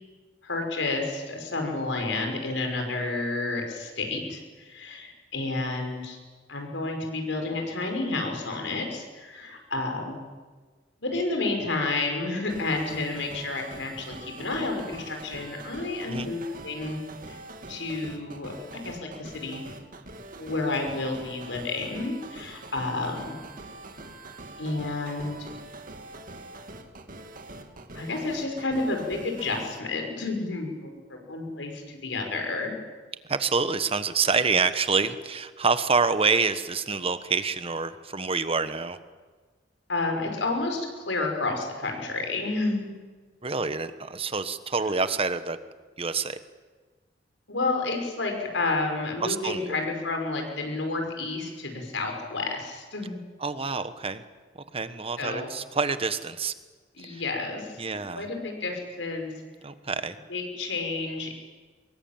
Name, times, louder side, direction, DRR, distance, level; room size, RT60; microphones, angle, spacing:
voice 1, 0.4-6.2 6.5-10.2 11.0-17.0 17.2-17.4 17.7-18.5 18.8-19.7 20.4-23.4 24.6-25.5 27.9-32.7 39.9-42.9 47.5-53.2 55.2-55.5 57.0-59.3 60.3-61.4, left 3 dB, 80° left, 3 dB, 5.7 m, -30 dB
sound 1, 12.5-29.8, right 2 dB, 50° right, 2.2 m, -44 dB
voice 2, 33.3-39.0 43.4-45.6 46.0-46.4 49.2-49.8 53.4-54.2 54.7-56.5 57.0-57.2 57.8-58.3 59.6-60.2, right 4 dB, 30° right, 11 dB, 1.3 m, -27 dB
24.0 x 22.0 x 8.9 m, 1.4 s
head